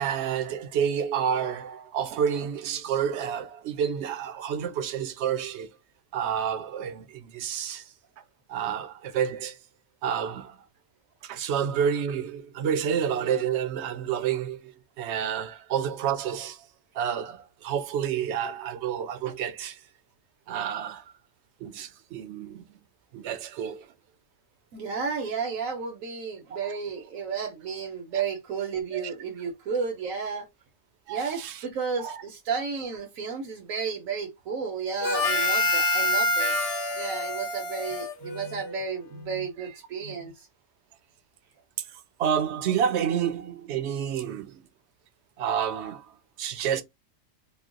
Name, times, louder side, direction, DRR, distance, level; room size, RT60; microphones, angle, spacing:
voice 1, 0.0-5.7 6.1-7.8 8.5-9.6 10.0-10.6 11.2-16.7 16.9-19.8 20.5-21.0 21.6-22.7 23.1-23.9 28.9-29.1 31.1-31.6 32.0-32.2 39.6-39.7 42.2-44.6 45.4-46.8, right 8 dB, 65° right, 0.8 m, -29 dB
voice 2, 24.7-30.5 31.1-36.6 37.0-40.5, right 5 dB, 90° right, 1.2 m, -32 dB
Harmonica, 35.0-38.8, left 1 dB, 55° left, 1.0 m, -26 dB
3.0 x 2.1 x 3.6 m
omnidirectional pair, 1.4 m